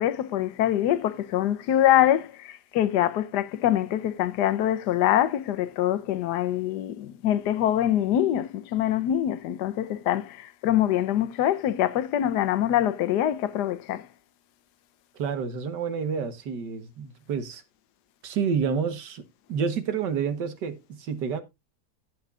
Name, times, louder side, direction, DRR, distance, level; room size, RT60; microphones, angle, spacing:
voice 1, 0.0-14.1, left 11 dB, 80° left, 1.3 m, -24 dB
voice 2, 15.2-17.6 18.2-19.2 19.5-21.4, right 6 dB, 85° right, 1.8 m, -29 dB
17.5 x 6.1 x 2.4 m
omnidirectional pair, 1.8 m